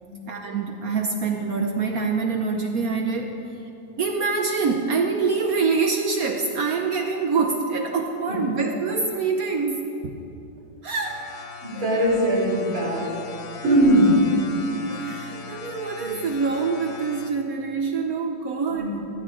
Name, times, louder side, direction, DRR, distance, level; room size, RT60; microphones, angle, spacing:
voice 1, 0.3-3.4 4.0-10.2 10.8-11.3 11.7-11.8 13.5-13.6 14.9-19.0, right 4 dB, 65° right, 3 dB, 0.9 m, -25 dB
sound 1, 11.0-17.3, left 4 dB, 65° left, 0.8 m, -39 dB
voice 2, 11.6-13.1 13.6-14.2 16.0-16.1 18.7-19.1, equal, 90° right, -6 dB, 4.3 m, -21 dB
15.0 x 12.0 x 3.8 m, 2.8 s
omnidirectional pair, 2.2 m